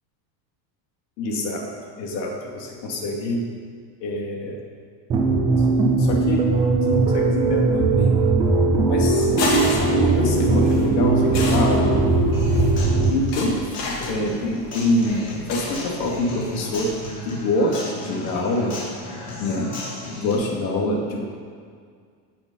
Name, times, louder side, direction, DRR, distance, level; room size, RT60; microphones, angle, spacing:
voice 1, 1.2-1.7 2.0-3.5 4.0-4.6 5.6-5.7 6.0-6.5 6.9-8.2 8.9-9.3 9.7-12.0 13.1-16.9 17.2-18.8 19.4-19.8 20.2-21.2, left 1 dB, 85° left, -1 dB, 2.8 m, -25 dB
sound 1, 5.1-13.1, right 3 dB, 15° right, 0.3 m, -19 dB
sound 2, 9.0-17.0, left 2 dB, 55° left, 2.9 m, -32 dB
Human voice / Acoustic guitar, 12.3-20.3, left 1 dB, 30° left, 3.8 m, -36 dB
17.5 x 6.1 x 5.5 m, 2.1 s
cardioid pair, 170°, 49 cm